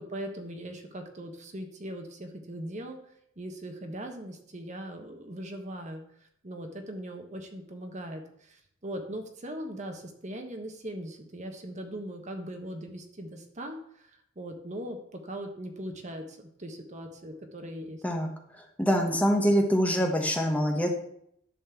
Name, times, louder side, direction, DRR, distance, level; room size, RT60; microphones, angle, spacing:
voice 1, 0.0-3.0 3.4-18.0, right 1 dB, 35° right, 4 dB, 1.3 m, -40 dB
voice 2, 18.6-20.9, equal, 5° left, 2 dB, 1.1 m, -25 dB
11.0 x 4.3 x 7.1 m, 0.72 s
head